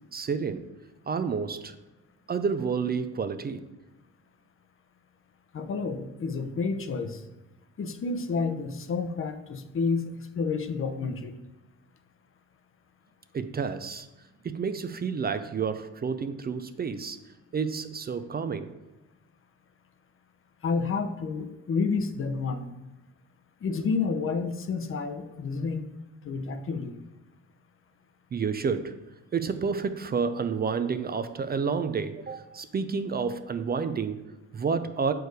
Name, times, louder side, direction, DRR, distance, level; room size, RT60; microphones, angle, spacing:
voice 1, 0.1-0.7 1.1-1.7 2.3-3.6 13.3-14.1 14.4-17.2 17.5-18.8 28.3-29.0 29.3-35.1, right 5 dB, 30° right, 0.5 m, -30 dB
voice 2, 5.5-7.2 7.8-11.3 20.6-22.7 23.6-25.9 26.2-27.0, left 4 dB, 45° left, 0.7 m, -30 dB
6.5 x 4.7 x 4.7 m
cardioid pair, 90°, 30 cm